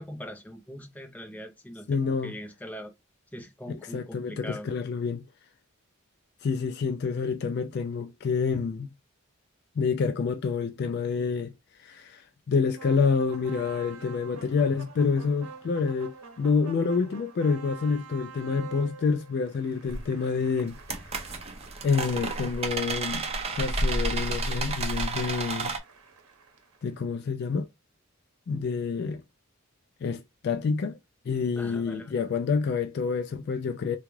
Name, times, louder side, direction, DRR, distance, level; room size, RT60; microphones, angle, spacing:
voice 1, 0.0-2.9 3.3-4.7 31.5-32.2, equal, 5° left, 0.7 m, -41 dB
voice 2, 1.9-2.3 3.9-5.2 6.4-8.9 9.8-11.5 11.8-20.8 21.2-21.3 21.8-23.3 23.5-25.7 26.8-27.7 28.5-29.2 30.0-31.0 31.3-34.0, left 5 dB, 50° left, 0.3 m, -28 dB
sound 1, 12.8-26.9, right 5 dB, 90° right, 0.8 m, -47 dB
sound 2, 19.9-20.1 20.7-25.8, right 2 dB, 30° right, 0.6 m, -31 dB
3.5 x 2.3 x 3.0 m
head